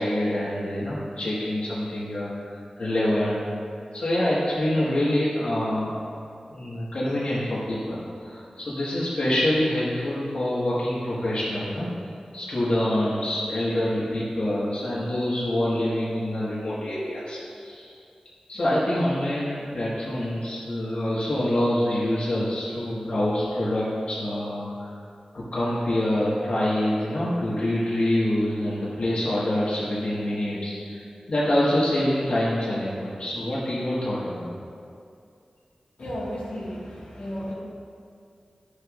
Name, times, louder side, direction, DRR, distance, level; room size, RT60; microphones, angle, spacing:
voice 1, 0.0-3.4 3.9-5.9 6.5-11.9 12.3-17.9 18.5-24.9 25.3-34.5, left 1 dB, 65° left, -8 dB, 1.6 m, -26 dB
voice 2, 36.0-37.5, equal, 85° left, -7 dB, 1.8 m, -33 dB
11.5 x 6.6 x 2.5 m, 2.4 s
wide cardioid pair, 65°, 2 cm